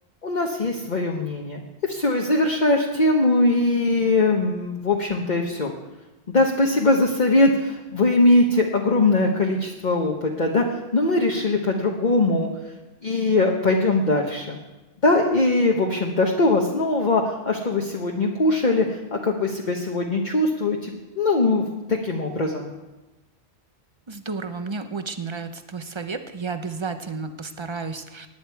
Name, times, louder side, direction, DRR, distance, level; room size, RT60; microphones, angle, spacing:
voice 1, 0.2-5.7 6.3-10.6 10.9-12.5 13.0-14.6 15.0-22.7, left 2 dB, 45° left, 0 dB, 1.2 m, -21 dB
voice 2, 24.1-28.3, right 4 dB, 30° right, 9 dB, 0.8 m, -32 dB
18.5 x 10.0 x 4.6 m, 1.1 s
omnidirectional pair, 1.1 m